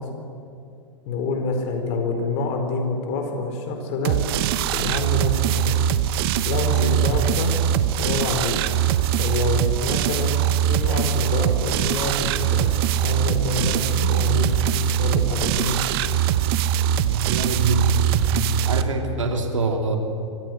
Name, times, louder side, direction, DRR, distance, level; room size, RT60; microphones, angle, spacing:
voice 1, 1.1-4.2 4.7-5.8 6.4-7.5 8.0-8.6 9.2-10.4 10.6-12.7 13.0-14.5 15.0-15.8 19.1-19.3, left 3 dB, 45° left, 4 dB, 4.3 m, -27 dB
sound 1, 4.0-18.8, right 10 dB, 50° right, 1.0 m, -22 dB
voice 2, 17.0-18.0 18.6-20.0, right 3 dB, 80° right, 4 dB, 2.8 m, -24 dB
24.5 x 15.5 x 7.9 m, 2.5 s
hypercardioid pair, 105°, 16 cm